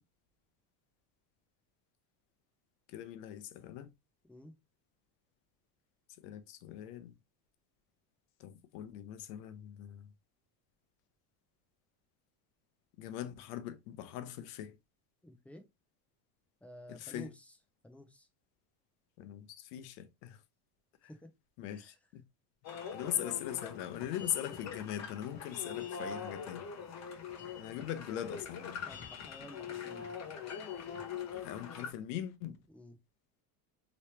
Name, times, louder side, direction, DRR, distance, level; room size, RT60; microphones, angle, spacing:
voice 1, 2.9-3.9 6.2-7.1 8.4-10.1 13.0-14.8 16.9-17.3 19.2-20.4 21.0-21.1 21.6-22.2 22.9-26.6 27.6-28.9 31.3-32.6, left 11 dB, 90° left, 0.7 m, -41 dB
voice 2, 15.2-15.7 16.6-17.6 17.8-18.3 21.0-21.3 21.6-22.0 28.9-30.2 32.7-33.0, equal, 5° left, 0.3 m, -52 dB
sound 1, 22.6-31.9, left 7 dB, 35° left, 0.9 m, -43 dB
3.1 x 2.9 x 3.1 m
cardioid pair, 125°, 46 cm